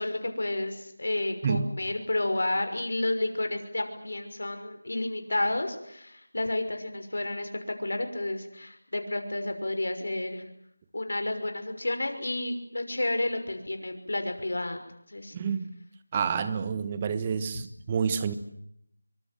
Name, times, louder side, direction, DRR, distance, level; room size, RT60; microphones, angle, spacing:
voice 1, 0.0-7.5 7.8-10.4 10.9-14.8 15.1-15.3, left 2 dB, 70° left, 7 dB, 6.0 m, -31 dB
voice 2, 15.3-15.7 16.1-18.3, right 6 dB, 20° right, 12 dB, 1.3 m, -28 dB
26.5 x 24.5 x 7.8 m, 0.75 s
figure-of-eight pair, 170°, 0 cm